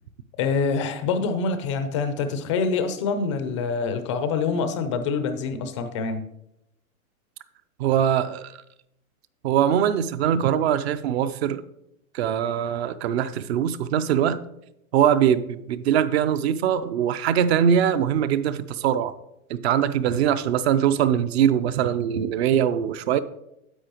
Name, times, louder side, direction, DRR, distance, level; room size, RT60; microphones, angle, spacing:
voice 1, 0.4-6.3, left 5 dB, 25° left, 9 dB, 0.4 m, -25 dB
voice 2, 7.8-8.5 9.4-11.6 12.1-14.4 14.9-19.2 19.5-23.2, right 9 dB, 45° right, 15 dB, 0.5 m, -22 dB
10.0 x 7.6 x 3.0 m, 0.83 s
hypercardioid pair, 135°, 44 cm